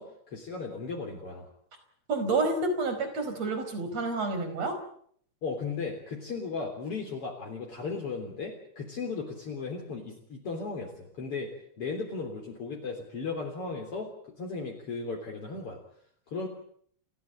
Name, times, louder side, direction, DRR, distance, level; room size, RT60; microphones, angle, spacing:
voice 1, 0.0-1.5 5.4-15.8 16.3-16.5, left 4 dB, 50° left, 0 dB, 4.4 m, -36 dB
voice 2, 2.1-4.8, right 3 dB, 60° right, 8 dB, 5.9 m, -29 dB
29.5 x 16.0 x 8.9 m, 0.64 s
omnidirectional pair, 3.3 m